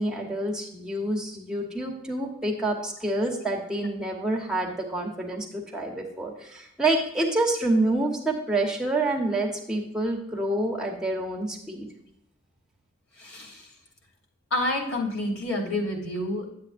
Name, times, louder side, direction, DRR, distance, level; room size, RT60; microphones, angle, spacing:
voice 1, 0.0-11.9, right 2 dB, 5° right, -1 dB, 1.1 m, -27 dB
voice 2, 13.2-13.7 14.5-16.5, left 1 dB, 85° left, -1 dB, 3.0 m, -29 dB
10.5 x 8.3 x 2.6 m, 0.79 s
head